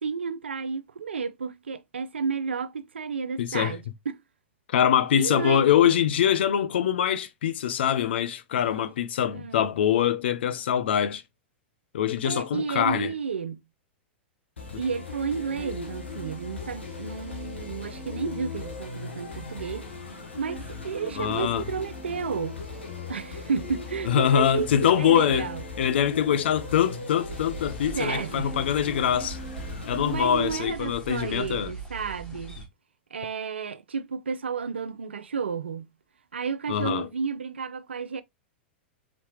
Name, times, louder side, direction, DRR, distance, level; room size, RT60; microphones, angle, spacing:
voice 1, 0.0-4.2 5.1-5.9 9.3-9.7 12.2-13.6 14.8-19.9 20.4-22.6 23.1-25.6 27.9-28.5 29.1-29.3 30.0-32.6 33.1-35.9 36.3-38.2, right 6 dB, 85° right, 0.5 m, -32 dB
voice 2, 3.4-3.7 4.7-11.2 11.9-13.1 21.2-21.6 24.1-25.5 25.8-29.4 29.9-31.7 36.7-37.1, left 9 dB, 70° left, 0.6 m, -24 dB
sound 1, 14.6-30.6, left 3 dB, 90° left, 1.6 m, -38 dB
sound 2, 27.2-32.7, right 6 dB, 15° left, 2.4 m, -41 dB
4.3 x 4.1 x 2.9 m
hypercardioid pair, 100°, 6 cm